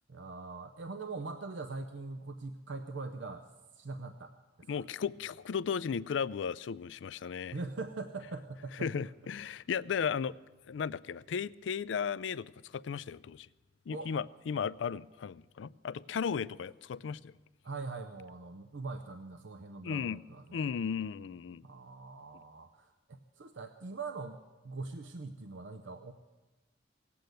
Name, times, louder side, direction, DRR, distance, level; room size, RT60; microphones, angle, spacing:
voice 1, 0.1-3.5 3.7-4.8 7.5-8.9 13.9-14.1 17.6-20.7 21.6-24.4 24.6-26.1, right 3 dB, 80° right, 0.7 m, -42 dB
voice 2, 4.7-7.6 8.8-10.4 10.7-13.5 13.9-17.3 19.8-20.2 20.5-21.7, left 6 dB, 80° left, 0.4 m, -35 dB
18.0 x 8.6 x 7.8 m
head